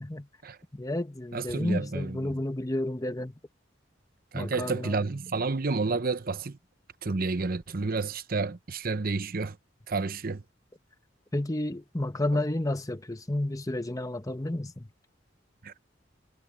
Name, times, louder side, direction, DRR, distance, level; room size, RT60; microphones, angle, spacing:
voice 1, 0.7-3.3 4.3-5.0 11.3-14.9, left 1 dB, 20° left, 1.0 m, -31 dB
voice 2, 1.3-2.3 4.3-6.6 7.0-9.6 9.9-10.4 15.6-15.7, right 3 dB, 50° right, 0.8 m, -30 dB
head